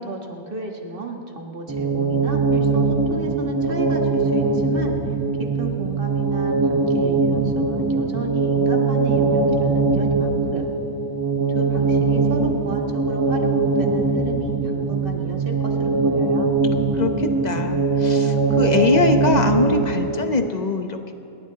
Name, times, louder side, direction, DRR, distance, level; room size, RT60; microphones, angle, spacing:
voice 1, 0.0-5.0 5.4-10.7 11.5-16.5, right 3 dB, 45° right, 2 dB, 1.8 m, -33 dB
sound 1, 1.7-20.5, right 3 dB, 20° right, 0.6 m, -21 dB
voice 2, 16.9-21.1, left 3 dB, 35° left, 6 dB, 1.0 m, -23 dB
28.5 x 12.0 x 4.1 m, 2.9 s
omnidirectional pair, 1.3 m